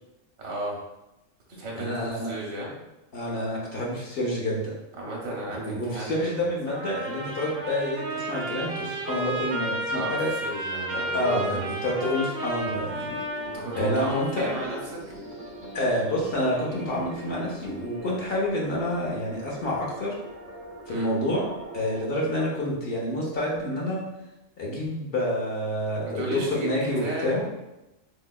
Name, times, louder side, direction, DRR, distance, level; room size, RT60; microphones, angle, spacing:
voice 1, 0.4-0.8 1.6-2.7 5.0-6.4 9.9-10.2 10.4-11.7 13.4-14.8 20.9-21.1 26.0-27.5, right 1 dB, 70° right, -3 dB, 1.1 m, -34 dB
voice 2, 1.8-2.3 3.1-4.7 5.6-10.3 11.1-13.1 13.7-14.5 15.7-20.1 20.9-21.5 21.7-24.0 24.6-27.5, left 1 dB, 55° left, -3 dB, 0.8 m, -28 dB
Trumpet, 6.7-14.8, right 1 dB, 55° right, 0.8 m, -33 dB
sound 1, 12.5-22.0, right 2 dB, 20° right, 0.3 m, -42 dB
4.2 x 2.7 x 2.2 m, 0.97 s
omnidirectional pair, 1.4 m